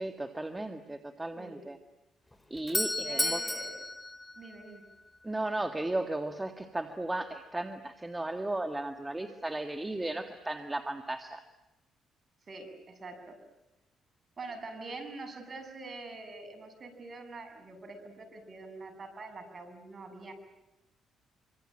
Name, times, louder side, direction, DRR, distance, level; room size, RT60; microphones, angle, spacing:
voice 1, 0.0-1.8 2.5-3.4 5.2-11.4, right 2 dB, 15° right, 6 dB, 1.8 m, -35 dB
voice 2, 1.4-1.7 3.0-3.8 4.4-4.8 12.5-13.4 14.4-20.3, right 3 dB, 40° right, 7 dB, 7.7 m, -45 dB
Doorbell, 2.3-5.2, left 2 dB, 10° left, 2.1 m, -33 dB
25.5 x 25.5 x 9.0 m, 0.94 s
cardioid pair, 90°, 0 cm